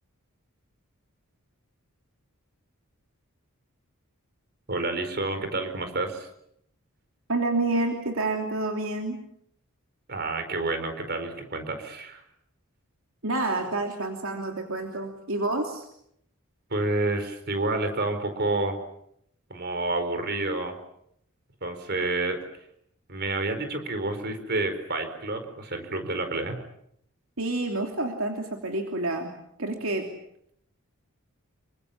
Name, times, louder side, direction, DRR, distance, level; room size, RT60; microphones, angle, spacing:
voice 1, 4.7-6.3 10.1-12.2 16.7-18.8 19.5-20.8 21.6-22.4 23.1-26.6, right 2 dB, 45° right, 8 dB, 4.7 m, -29 dB
voice 2, 7.3-9.2 13.2-15.9 27.4-29.3 29.6-30.1, right 2 dB, 65° right, 3 dB, 3.0 m, -28 dB
27.5 x 25.0 x 7.2 m, 0.73 s
head